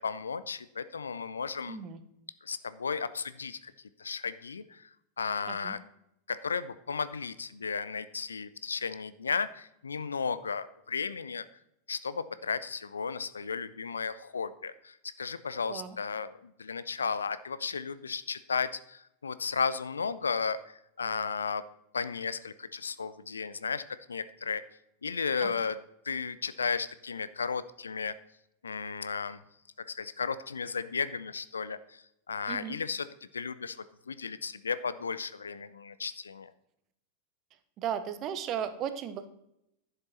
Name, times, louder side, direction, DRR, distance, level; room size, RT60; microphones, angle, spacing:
voice 1, 0.0-1.8 2.4-3.7 4.0-4.9 5.2-5.8 6.3-11.5 11.9-21.6 21.9-23.8 24.1-24.6 25.0-25.8 26.0-28.2 28.6-29.4 29.9-33.1 33.3-33.8 34.1-36.5, left 5 dB, 75° left, 15 dB, 0.5 m, -34 dB
voice 2, 1.7-2.0 5.5-5.8 15.7-16.0 25.4-25.5 32.5-32.8 37.8-39.3, right 9 dB, 35° right, 11 dB, 1.0 m, -35 dB
11.5 x 6.9 x 4.2 m, 0.80 s
figure-of-eight pair, 90°, 0 cm